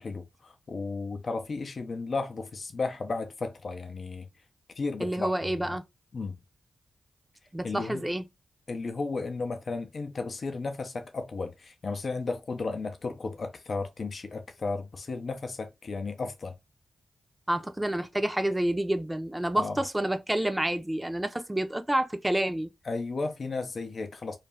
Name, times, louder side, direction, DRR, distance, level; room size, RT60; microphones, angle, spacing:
voice 1, 0.0-4.3 4.8-5.3 6.1-6.4 7.6-8.0 8.7-16.5 19.6-19.8 22.9-24.4, left 3 dB, 55° left, 0.5 m, -34 dB
voice 2, 5.0-5.8 7.5-8.2 17.5-22.7, right 1 dB, 15° right, 0.6 m, -28 dB
2.4 x 2.1 x 3.3 m
supercardioid pair, 40°, 0 cm